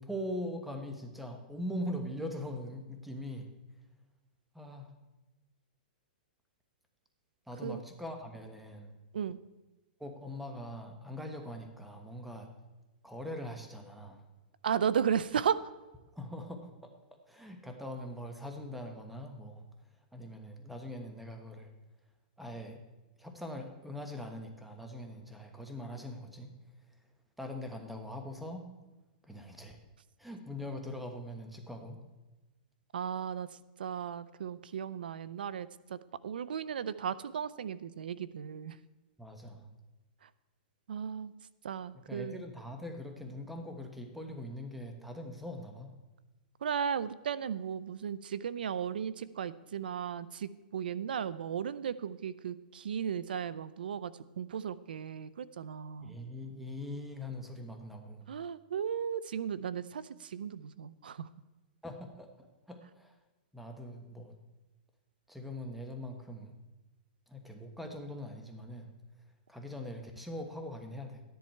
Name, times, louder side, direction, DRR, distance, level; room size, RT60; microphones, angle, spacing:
voice 1, 0.0-3.5 4.5-4.9 7.5-8.9 10.0-12.5 13.0-14.2 16.1-16.9 17.3-19.7 20.1-21.7 22.4-22.8 23.2-26.5 27.4-28.7 29.2-29.8 30.2-32.0 39.2-39.7 42.1-45.9 56.0-58.3 61.8-63.1 63.5-64.4 65.3-66.6 67.3-68.9 69.5-71.2, left 1 dB, ahead, 4 dB, 1.2 m, -42 dB
voice 2, 14.6-15.6 32.9-33.5 33.8-38.8 40.9-41.3 41.6-42.4 46.6-56.1 58.3-61.3, right 8 dB, 90° right, 17 dB, 0.5 m, -35 dB
12.5 x 10.5 x 4.5 m, 1.1 s
hypercardioid pair, 150°, 5 cm